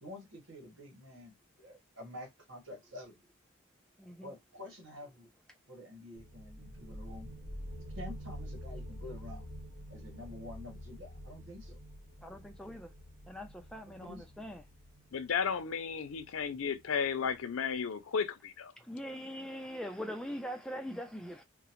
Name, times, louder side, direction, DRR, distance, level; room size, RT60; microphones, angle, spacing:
voice 1, 0.0-3.2 4.2-5.3 5.7-7.3 7.9-9.5 9.9-11.8 13.9-14.3, left 1 dB, 65° right, 1.3 m, -48 dB
voice 2, 4.0-4.3 12.2-12.9 13.3-14.6 18.8-21.4, equal, 5° left, 0.3 m, -42 dB
sound 1, 6.1-17.6, equal, 50° right, 1.0 m, -47 dB
voice 3, 15.1-18.7, left 6 dB, 85° left, 0.5 m, -33 dB
3.7 x 2.1 x 2.9 m
head